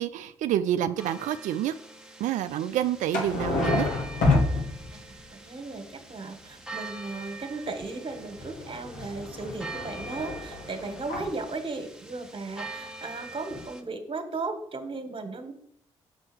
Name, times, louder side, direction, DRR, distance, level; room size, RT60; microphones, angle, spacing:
voice 1, 0.0-1.7 2.2-3.9, right 11 dB, 70° right, 11 dB, 0.4 m, -28 dB
sound 1, 1.0-13.8, right 3 dB, 5° right, 1.4 m, -44 dB
sound 2, 3.1-5.2 8.1-11.4 13.2-13.3 13.5-13.6, left 3 dB, 75° left, 2.0 m, -29 dB
voice 2, 4.9-15.5, right 3 dB, 40° right, 6 dB, 1.7 m, -36 dB
6.8 x 4.5 x 6.3 m, 0.69 s
hypercardioid pair, 40°, 13 cm